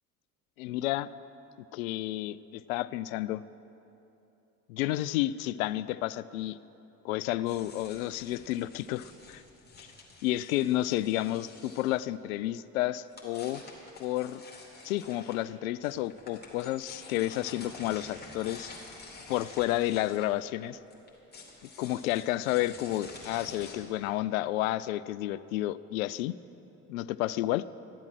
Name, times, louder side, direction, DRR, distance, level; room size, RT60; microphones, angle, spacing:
voice 1, 0.6-1.1 1.7-3.4 4.7-6.6 7.0-9.4 9.8-9.9 10.2-13.6 14.0-14.4 14.8-18.7 19.3-20.8 21.8-26.4 26.9-27.6, left 15 dB, 65° left, 17 dB, 0.5 m, -31 dB
sound 1, 7.5-12.0 13.0-15.4 15.8-23.8, left 3 dB, 20° left, 3.0 m, -49 dB
13.5 x 12.0 x 6.2 m, 2.9 s
figure-of-eight pair, 60°, 45 cm